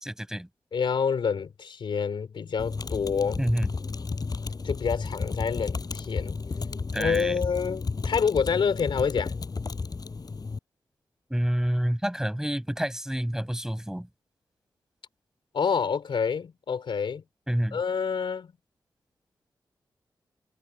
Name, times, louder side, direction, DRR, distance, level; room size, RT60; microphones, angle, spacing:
voice 1, 0.0-0.5 3.4-3.7 6.9-7.4 11.3-14.1 17.5-17.8, equal, 5° right, 5.2 m, -28 dB
voice 2, 0.7-3.4 4.6-6.4 7.0-9.4 15.5-17.2 17.7-18.5, left 6 dB, 75° left, 3.6 m, -27 dB
sound 1, 2.6-10.6, left 4 dB, 50° left, 5.3 m, -33 dB
cardioid pair, 50°, 8 cm